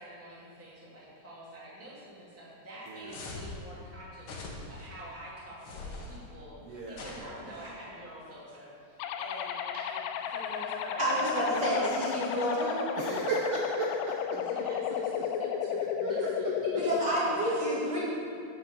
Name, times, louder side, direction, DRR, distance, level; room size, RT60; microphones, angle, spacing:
voice 1, 0.0-12.2 14.3-17.6, right 1 dB, 5° right, -8 dB, 1.9 m, -46 dB
sound 1, 3.1-3.6 4.2-4.9 5.6-6.2 6.9-7.7, left 3 dB, 55° left, 1.5 m, -42 dB
voice 2, 6.6-7.0 13.0-14.4 16.0-16.3, right 3 dB, 70° right, -3 dB, 1.5 m, -34 dB
sound 2, 9.0-17.0, left 8 dB, 80° left, 2.1 m, -33 dB
voice 3, 11.0-12.8 16.8-18.0, equal, 30° right, -8 dB, 3.0 m, -29 dB
8.2 x 7.1 x 7.0 m, 2.4 s
omnidirectional pair, 3.8 m